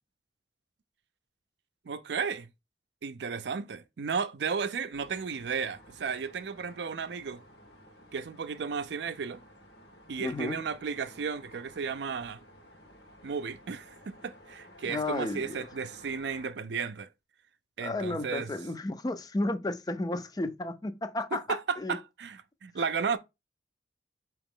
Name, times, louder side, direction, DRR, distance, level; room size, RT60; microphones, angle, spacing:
voice 1, 1.9-2.5 3.0-7.4 8.1-9.4 10.1-12.4 13.2-17.1 17.8-18.5 21.3-23.2, right 5 dB, 75° right, 0.5 m, -34 dB
sound 1, 4.9-16.5, equal, 70° left, 1.4 m, -54 dB
voice 2, 10.2-10.6 14.9-15.7 17.8-21.4 21.8-22.0 22.8-22.9, left 2 dB, 20° left, 0.4 m, -33 dB
4.9 x 3.0 x 3.7 m
head